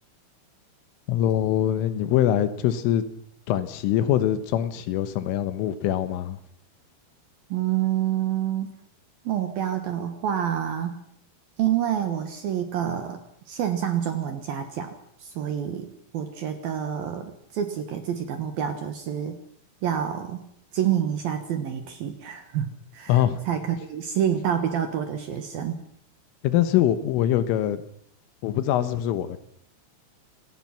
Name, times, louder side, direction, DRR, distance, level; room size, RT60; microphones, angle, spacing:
voice 1, 1.1-3.0 3.5-6.4 23.1-23.4 26.4-27.8 28.4-29.4, left 11 dB, 80° left, 12 dB, 3.7 m, -23 dB
voice 2, 7.5-8.7 9.2-10.9 11.6-13.2 13.5-14.9 15.2-19.4 19.8-20.4 20.7-25.8, right 9 dB, 65° right, 8 dB, 2.5 m, -28 dB
27.0 x 17.5 x 5.9 m, 0.66 s
omnidirectional pair, 5.8 m